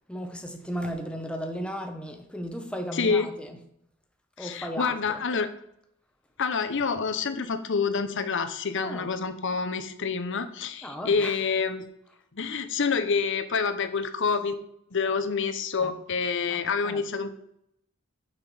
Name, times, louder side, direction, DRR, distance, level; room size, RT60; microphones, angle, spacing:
voice 1, 0.1-3.6 4.4-5.2 8.8-9.1 10.8-11.4 15.8-15.9 16.5-17.0, equal, 5° left, 4 dB, 1.1 m, -35 dB
voice 2, 2.9-3.3 4.4-5.5 6.4-11.9 12.3-14.6 14.9-17.3, left 5 dB, 60° left, 10 dB, 0.9 m, -27 dB
6.1 x 5.9 x 7.0 m, 0.75 s
head